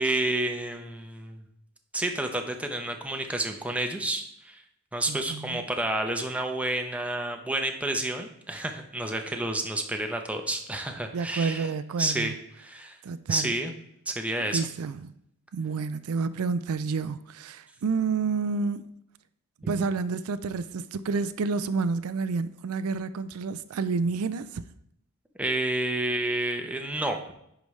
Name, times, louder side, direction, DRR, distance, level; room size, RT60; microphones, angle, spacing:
voice 1, 0.0-1.4 1.9-4.6 4.9-11.7 12.0-12.3 12.6-13.0 13.3-13.7 14.1-14.6 19.6-19.7 25.4-27.3, right 1 dB, 5° right, 0.7 m, -30 dB
voice 2, 5.1-5.6 11.1-12.4 13.0-13.5 14.5-15.1 15.5-18.9 19.7-24.6, right 4 dB, 80° right, 0.4 m, -29 dB
10.5 x 4.9 x 3.2 m
head